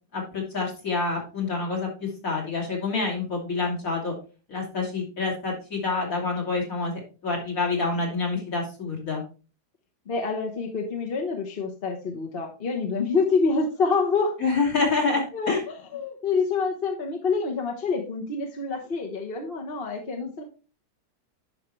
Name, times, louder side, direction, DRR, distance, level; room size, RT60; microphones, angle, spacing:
voice 1, 0.1-4.1 4.5-6.9 7.2-9.2 14.4-15.6, left 4 dB, 55° left, -1 dB, 2.9 m, -27 dB
voice 2, 10.1-14.4 15.3-20.4, left 4 dB, 40° left, 1 dB, 1.2 m, -27 dB
9.7 x 5.8 x 3.1 m, 0.34 s
omnidirectional pair, 1.7 m